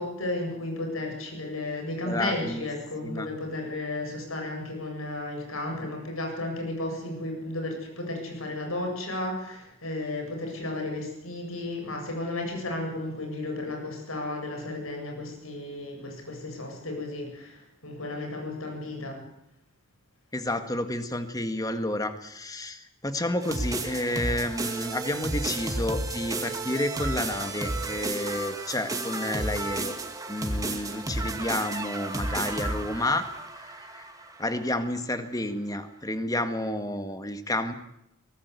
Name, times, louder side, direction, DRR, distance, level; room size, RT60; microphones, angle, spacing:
voice 1, 0.0-19.2, left 2 dB, 85° left, 3 dB, 7.8 m, -33 dB
voice 2, 2.1-2.7 3.0-3.3 20.3-30.0 30.3-33.2 33.6-34.1 34.4-37.7, left 1 dB, 15° left, 8 dB, 1.8 m, -30 dB
sound 1, 23.4-34.5, right 2 dB, 15° right, 2.2 m, -32 dB
24.0 x 18.5 x 8.4 m, 0.83 s
head